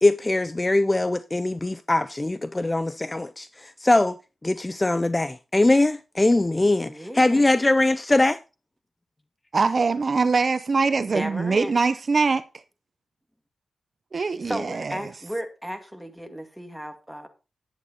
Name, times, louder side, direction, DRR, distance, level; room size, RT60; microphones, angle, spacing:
voice 1, 0.0-4.2 4.4-8.4, left 2 dB, 20° left, 0.5 m, -22 dB
voice 2, 6.9-7.5 11.1-11.9 14.2-17.3, equal, ahead, 2.2 m, -34 dB
voice 3, 9.5-12.4 14.1-15.0, right 4 dB, 45° right, 0.7 m, -23 dB
11.0 x 8.3 x 4.2 m
wide cardioid pair, 95°, 0 cm